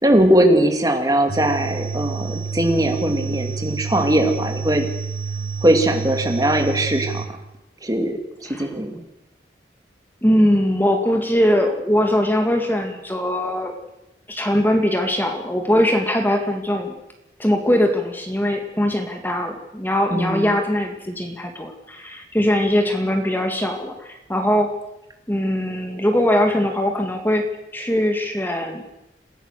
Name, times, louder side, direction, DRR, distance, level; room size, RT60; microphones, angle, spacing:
voice 1, 0.0-4.9 5.6-7.2 7.8-9.0 20.1-20.5, right 1 dB, 20° right, 4 dB, 2.3 m, -20 dB
sound 1, 1.3-7.3, right 4 dB, 55° right, 1.8 m, -29 dB
voice 2, 10.2-13.7 14.3-16.9 17.4-24.7 25.3-27.4 27.7-28.8, equal, 10° left, 4 dB, 2.1 m, -21 dB
27.5 x 16.0 x 6.7 m, 0.91 s
head